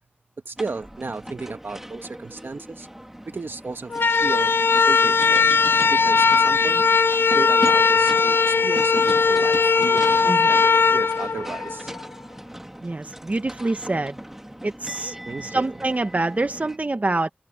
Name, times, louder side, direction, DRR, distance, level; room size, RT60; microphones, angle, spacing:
voice 1, 0.4-2.9 3.2-3.9 4.2-4.5 4.9-5.5 5.9-6.9 7.3-11.9 15.3-15.6, right 3 dB, 65° right, 1.5 m, -34 dB
sound 1, 0.6-16.8, equal, 10° right, 2.7 m, -38 dB
sound 2, 3.9-12.1, left 5 dB, 70° left, 0.5 m, -19 dB
voice 2, 12.8-14.2 14.6-15.2 15.4-17.3, right 2 dB, 40° right, 1.1 m, -26 dB
wide cardioid pair, 75°, 4 cm